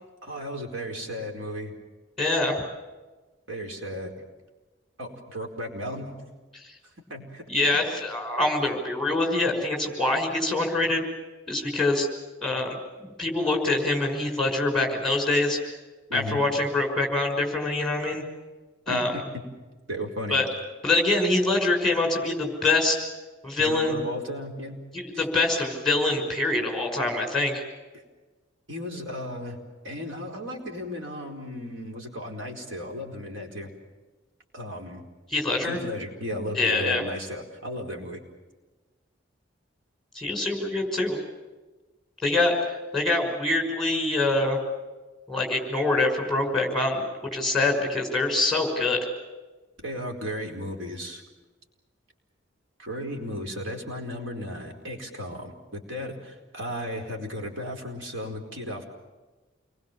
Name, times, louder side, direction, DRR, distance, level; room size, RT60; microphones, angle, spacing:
voice 1, 0.2-1.7 3.5-4.1 5.0-6.2 7.1-7.4 16.1-16.4 18.9-19.0 19.9-20.4 23.6-24.8 25.1-25.3 27.9-28.0 28.7-29.6 29.8-33.7 34.5-35.0 35.6-38.2 49.8-51.2 52.8-58.8, equal, 75° right, 2 dB, 4.6 m, -35 dB
voice 2, 2.2-2.6 7.5-11.0 11.5-12.1 12.4-15.8 16.1-18.2 18.9-19.1 20.3-20.5 20.8-23.1 23.4-24.0 24.9-27.6 35.3-35.8 36.6-37.0 40.1-41.2 42.2-44.6 45.3-47.0 47.3-49.0, left 2 dB, ahead, 2 dB, 5.9 m, -25 dB
28.5 x 22.0 x 7.4 m, 1.2 s
head